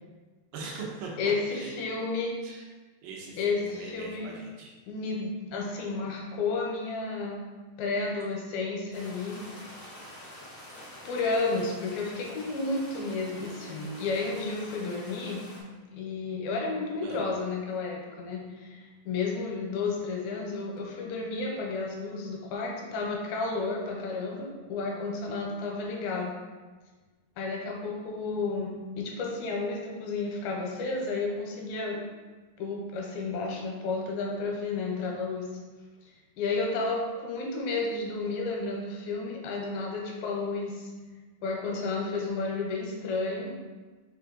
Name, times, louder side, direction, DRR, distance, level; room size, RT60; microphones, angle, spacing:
voice 1, 0.5-1.1 1.5-1.7 2.4-2.6 3.0-4.7 17.0-17.2, right 4 dB, 80° right, -2 dB, 2.5 m, -41 dB
voice 2, 1.2-2.3 3.4-4.3 4.9-7.4 7.8-9.4 11.1-15.4 15.9-26.3 27.4-32.0 32.6-35.5 36.4-40.9 41.4-43.5, left 3 dB, 90° left, 0 dB, 2.5 m, -32 dB
sound 1, 8.9-15.6, left 1 dB, 70° left, 1.1 m, -47 dB
5.9 x 2.4 x 3.7 m, 1.3 s
omnidirectional pair, 4.2 m